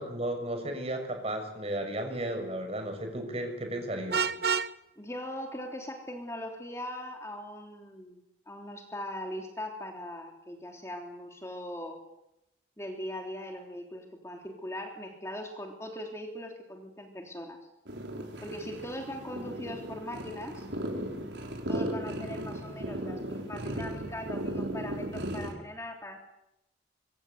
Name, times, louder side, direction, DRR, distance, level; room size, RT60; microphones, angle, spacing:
voice 1, 0.0-4.2, right 1 dB, 35° right, 5 dB, 6.5 m, -34 dB
Vehicle horn car horn honking, 4.1-4.7, right 6 dB, 65° right, 0.9 m, -28 dB
voice 2, 5.0-8.2 8.5-12.0 12.8-17.6 18.4-20.7 21.7-26.2, left 1 dB, 15° left, 3 dB, 3.3 m, -40 dB
sound 1, 17.9-25.5, right 1 dB, 80° right, 5.5 m, -36 dB
25.0 x 25.0 x 8.1 m, 0.86 s
head